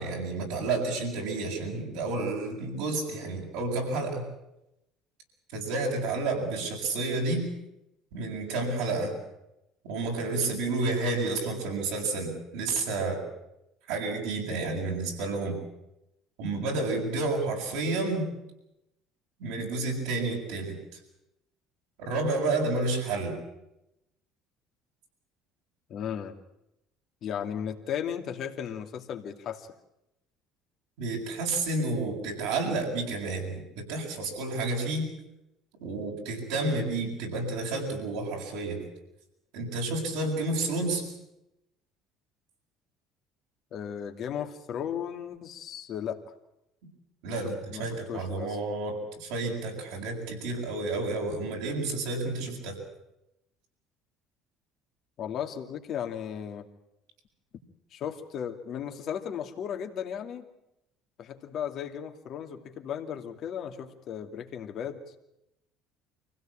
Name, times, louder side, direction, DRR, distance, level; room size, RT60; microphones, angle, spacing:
voice 1, 0.0-4.2 5.5-7.4 8.1-9.2 9.9-13.2 13.9-15.6 16.4-18.3 19.4-20.7 22.0-23.3 31.0-35.1 35.8-38.8 39.5-41.0 47.2-52.8, right 3 dB, 75° right, 0 dB, 7.6 m, -30 dB
voice 2, 25.9-26.3 27.2-29.7 43.7-46.2 47.4-48.6 55.2-56.7 57.9-60.5 61.2-65.0, left 8 dB, 55° left, 5 dB, 2.5 m, -35 dB
25.0 x 16.5 x 9.0 m, 0.88 s
hypercardioid pair, 75°, 0 cm